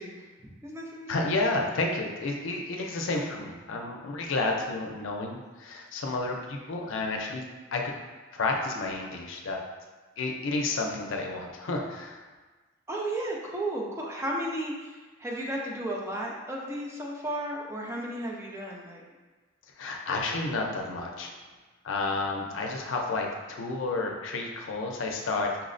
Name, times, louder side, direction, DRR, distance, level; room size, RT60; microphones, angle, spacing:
voice 1, 0.0-1.1 12.9-19.0, right 1 dB, 15° right, -2 dB, 0.4 m, -34 dB
voice 2, 1.1-7.4 7.7-7.9 8.3-9.6 10.2-12.2 19.8-21.3 21.8-25.6, left 3 dB, 90° left, 1 dB, 0.5 m, -31 dB
5.6 x 2.0 x 2.5 m, 1.3 s
head